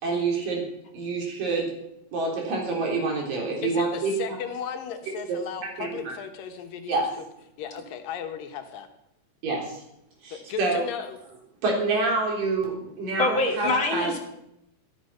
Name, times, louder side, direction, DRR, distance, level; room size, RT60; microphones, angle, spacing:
voice 1, 0.0-0.7 0.9-1.7 2.1-4.4 5.3-5.4 5.8-6.1 6.9-7.1 9.4-9.8 10.2-10.8 11.6-14.1, right 3 dB, 80° right, -1 dB, 5.6 m, -27 dB
voice 2, 3.6-7.1 7.6-8.9 10.3-11.2, left 8 dB, 85° left, 5 dB, 3.0 m, -35 dB
voice 3, 13.2-14.2, left 2 dB, 40° left, 1 dB, 2.9 m, -24 dB
13.5 x 13.0 x 5.8 m, 0.80 s
omnidirectional pair, 3.9 m